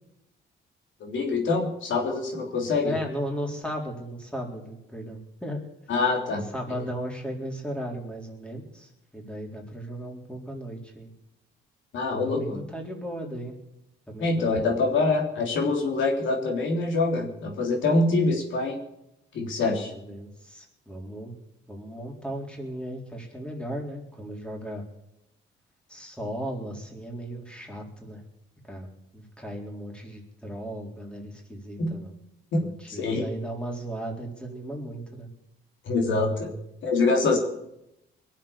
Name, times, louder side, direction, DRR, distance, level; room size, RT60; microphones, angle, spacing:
voice 1, 1.0-2.9 5.9-6.4 11.9-12.6 14.2-18.8 19.3-19.9 31.8-31.9 32.9-33.2 35.9-36.5 36.8-37.4, left 3 dB, 75° left, 0 dB, 3.6 m, -25 dB
voice 2, 2.8-5.6 6.0-6.1 6.3-11.1 12.2-13.5 14.1-14.5 19.9-21.3 21.7-24.8 25.9-28.2 28.7-28.9 29.1-32.1 32.6-35.3, equal, 5° left, 0 dB, 3.9 m, -36 dB
22.0 x 7.6 x 7.2 m, 0.83 s
cardioid pair, 90°, 20 cm